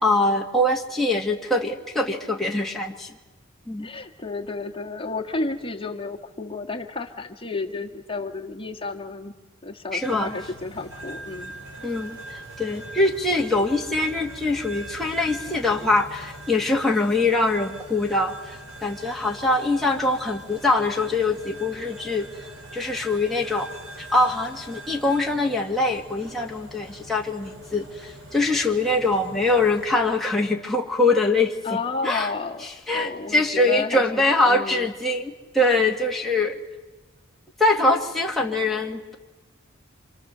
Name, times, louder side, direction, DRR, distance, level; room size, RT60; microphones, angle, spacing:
voice 1, 0.0-3.1 3.7-3.9 9.9-10.3 11.8-22.5 22.7-23.7 24.0-31.5 32.0-32.3 32.6-36.6 37.6-39.1, left 2 dB, ahead, -2 dB, 1.6 m, -23 dB
voice 2, 3.8-9.3 9.6-11.5 31.6-32.6 32.9-34.9, left 3 dB, 25° left, 1 dB, 1.7 m, -32 dB
sound 1, 10.0-30.0, right 1 dB, 65° right, 4.6 m, -42 dB
28.0 x 26.0 x 6.8 m, 1.2 s
head